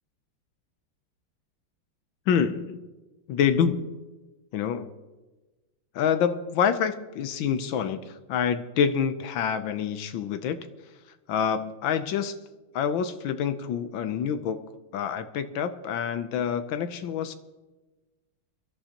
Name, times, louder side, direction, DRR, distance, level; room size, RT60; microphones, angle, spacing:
voice 1, 2.3-2.8 3.3-3.9 4.5-4.9 5.9-10.6 11.3-12.4 12.7-14.6 14.9-17.3, left 7 dB, 75° left, 10 dB, 1.4 m, -27 dB
22.5 x 13.5 x 2.9 m, 1.2 s
omnidirectional pair, 2.3 m